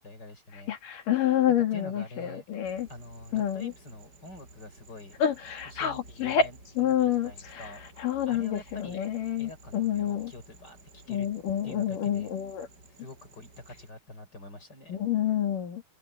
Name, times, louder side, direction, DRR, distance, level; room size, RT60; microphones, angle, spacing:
voice 1, 0.0-0.7 1.7-2.4 2.9-5.2 5.6-7.8 8.3-9.1 9.4-11.3 11.6-12.3 12.9-15.0, left 2 dB, 30° left, 6.2 m, -46 dB
voice 2, 0.7-2.9 3.3-3.7 5.2-6.5 6.8-7.7 8.0-10.3 11.1-12.7 14.9-15.8, left 9 dB, 75° left, 4.1 m, -28 dB
sound 1, 2.6-13.9, right 2 dB, 30° right, 8.4 m, -54 dB
omnidirectional pair, 3.8 m